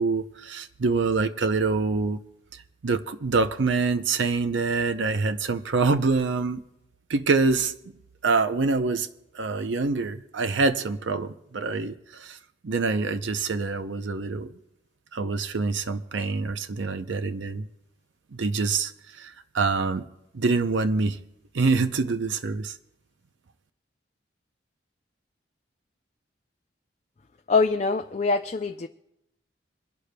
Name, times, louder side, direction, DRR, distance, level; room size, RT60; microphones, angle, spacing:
voice 1, 0.0-2.2 2.5-6.6 7.1-7.7 8.2-9.1 9.3-12.4 12.6-14.5 15.1-17.7 18.3-20.1 20.3-21.2 21.5-22.8, right 4 dB, 80° right, 0.6 m, -25 dB
voice 2, 27.5-28.9, left 4 dB, 35° left, 0.4 m, -24 dB
27.0 x 11.5 x 2.2 m
head